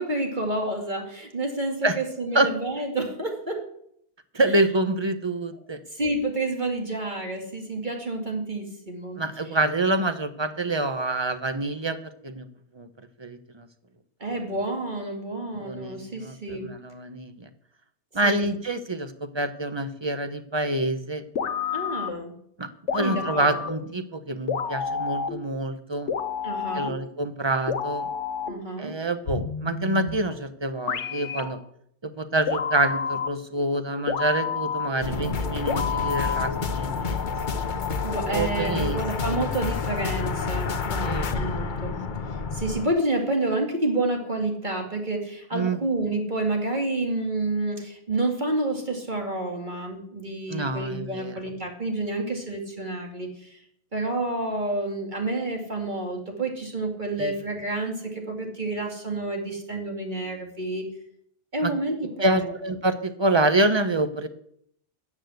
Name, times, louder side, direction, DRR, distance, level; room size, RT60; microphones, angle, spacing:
voice 1, 0.0-3.7 5.9-9.2 14.2-16.7 18.2-18.5 21.7-22.4 23.0-23.6 26.4-27.0 28.5-29.0 38.0-42.0 42.5-53.6 53.9-60.9 61.5-62.5, right 2 dB, 40° right, 2 dB, 2.6 m, -29 dB
voice 2, 4.3-5.8 9.2-12.0 12.2-12.5 12.7-12.9 13.2-13.7 15.5-17.5 18.1-21.2 22.6-26.1 26.7-28.1 28.8-31.6 32.0-37.3 38.3-39.0 39.3-39.4 41.0-41.3 45.5-45.8 50.5-51.4 57.2-57.3 61.6-61.7 62.2-64.3, right 2 dB, 25° right, 10 dB, 1.0 m, -26 dB
sound 1, 21.3-22.3 22.9-23.9 24.5-25.5 26.1-27.1 27.7-28.7 29.3-30.3 30.9-31.6 32.5-33.5 34.1-35.1 35.7-36.7, left 6 dB, 85° left, 1.3 m, -30 dB
sound 2, 35.0-42.9, left 5 dB, 45° left, 1.0 m, -29 dB
13.5 x 8.6 x 8.0 m, 0.69 s
omnidirectional pair, 1.2 m